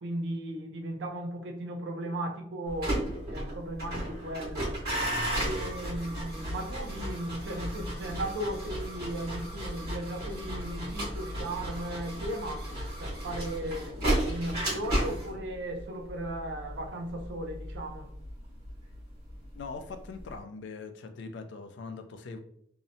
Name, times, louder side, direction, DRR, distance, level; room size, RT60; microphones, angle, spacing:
voice 1, 0.0-3.0 3.3-4.7 5.4-12.7 13.0-18.1, right 1 dB, 70° right, 0.4 m, -36 dB
sound 1, 2.7-19.7 19.9-20.4, right 1 dB, 50° right, 1.3 m, -34 dB
voice 2, 19.5-22.4, left 4 dB, 65° left, 0.3 m, -41 dB
2.7 x 2.0 x 2.6 m
head